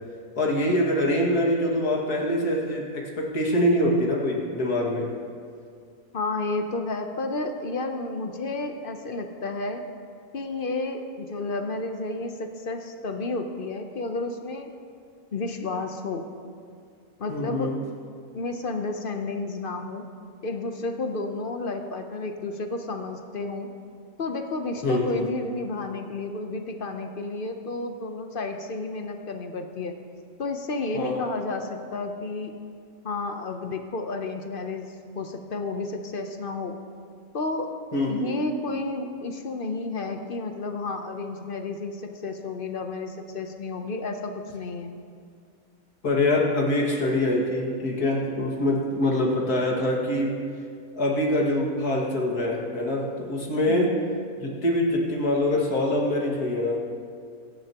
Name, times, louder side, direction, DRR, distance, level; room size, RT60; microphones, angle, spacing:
voice 1, 0.4-5.1 17.3-17.8 24.8-25.3 30.9-31.3 37.9-38.4 46.0-50.3 51.0-54.0 54.4-56.9, left 1 dB, 90° left, -2 dB, 2.5 m, -24 dB
voice 2, 6.1-9.8 10.3-14.7 15.3-16.3 17.2-17.7 18.3-20.0 20.4-23.7 24.2-30.0 30.4-32.5 33.0-36.8 37.3-37.7 38.1-45.0 53.7-53.9, left 3 dB, 45° left, 5 dB, 0.9 m, -31 dB
22.5 x 10.5 x 3.0 m, 2.2 s
omnidirectional pair, 1.6 m